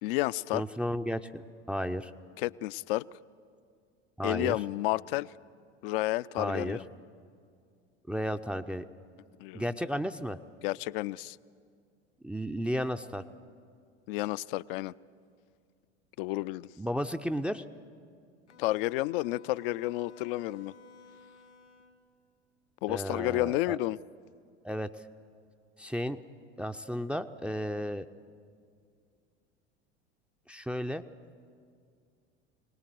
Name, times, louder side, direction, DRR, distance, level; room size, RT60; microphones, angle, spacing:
voice 1, 0.0-0.6 2.4-3.1 4.2-5.3 5.8-6.8 9.4-9.7 10.6-11.4 14.1-14.9 16.2-16.7 18.6-20.7 22.8-24.0, left 18 dB, 55° left, 18 dB, 0.5 m, -31 dB
voice 2, 0.5-2.1 4.2-4.6 6.4-6.8 8.1-8.9 9.5-10.4 12.2-13.2 16.8-17.6 22.9-23.8 24.6-24.9 25.8-26.2 26.6-28.1 30.5-31.0, equal, 5° right, 8 dB, 0.5 m, -33 dB
Bowed string instrument, 18.5-22.1, left 5 dB, 80° left, 2.0 m, -55 dB
24.0 x 19.0 x 7.7 m, 2.2 s
figure-of-eight pair, 80°, 35 cm